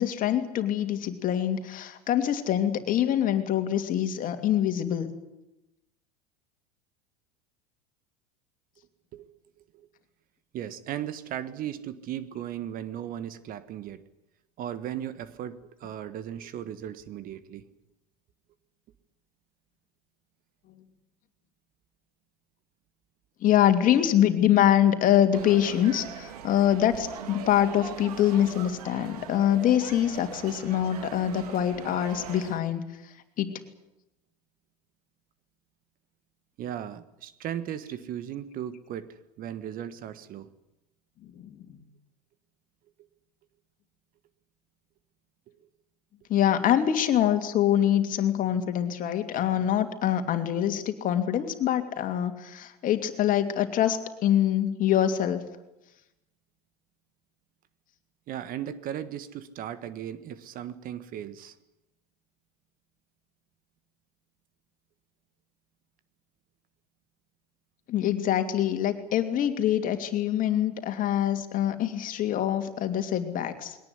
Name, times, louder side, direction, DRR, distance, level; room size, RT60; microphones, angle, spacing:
voice 1, 0.0-5.1 23.4-32.8 33.4-33.6 41.4-41.5 46.3-55.4 67.9-73.8, left 10 dB, 45° left, 7 dB, 2.9 m, -24 dB
voice 2, 10.5-14.0 14.6-17.6 36.6-40.5 58.3-61.5, right 10 dB, 45° right, 14 dB, 1.6 m, -37 dB
sound 1, 25.3-32.6, right 9 dB, 75° right, 2.1 m, -41 dB
21.5 x 18.5 x 9.9 m, 0.92 s
hypercardioid pair, 85°, 20 cm